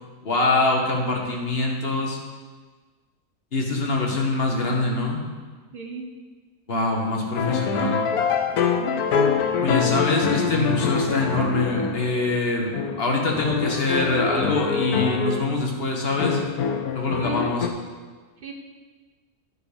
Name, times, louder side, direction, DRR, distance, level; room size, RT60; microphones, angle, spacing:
voice 1, 0.2-2.2 3.5-5.2 6.7-8.0 9.6-16.4 16.9-17.7, left 2 dB, 45° left, 0 dB, 1.3 m, -24 dB
voice 2, 5.7-6.1 8.6-9.2 17.2-17.4 18.4-18.5, right 5 dB, 45° right, 2 dB, 1.0 m, -38 dB
sound 1, 7.4-12.4 12.7-15.4 16.2-17.7, left 6 dB, 75° left, 1.2 m, -25 dB
11.0 x 4.7 x 5.0 m, 1.4 s
omnidirectional pair, 1.6 m